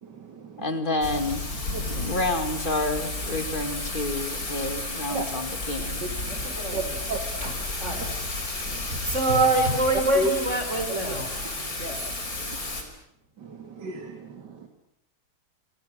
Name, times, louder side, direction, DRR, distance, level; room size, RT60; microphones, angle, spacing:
voice 1, 0.0-0.7 1.7-2.1 5.1-5.3 6.0-6.8 7.1-7.2 8.6-9.0 10.2-10.3 13.4-14.7, right 2 dB, 80° right, 6 dB, 2.7 m, -34 dB
voice 2, 0.6-1.4 1.9-6.1, left 2 dB, 30° left, 9 dB, 2.6 m, -29 dB
Thunder / Rain, 1.0-12.8, left 2 dB, 55° left, 5.0 m, -32 dB
voice 3, 6.3-7.1 7.4-8.1 8.6-12.0, right 2 dB, 40° right, 5 dB, 5.6 m, -26 dB
29.0 x 27.0 x 6.4 m, 0.79 s
omnidirectional pair, 1.8 m